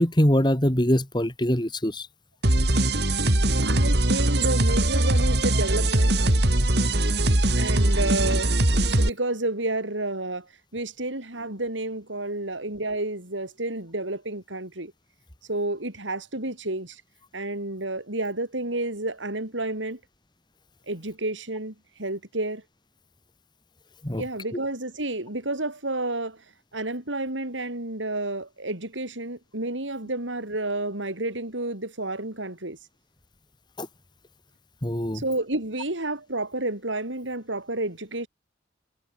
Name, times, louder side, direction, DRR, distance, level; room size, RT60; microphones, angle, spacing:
voice 1, 0.0-2.1 24.0-24.2 33.8-33.9 34.8-35.2, equal, 25° left, 2.4 m, -23 dB
sound 1, 2.4-9.1, right 1 dB, 60° right, 3.0 m, -21 dB
voice 2, 3.3-6.2 7.6-8.5 8.9-10.5 10.7-14.9 15.5-17.0 17.3-20.0 20.9-22.6 24.2-26.4 26.7-32.8 35.1-38.3, right 2 dB, 85° right, 5.5 m, -30 dB
head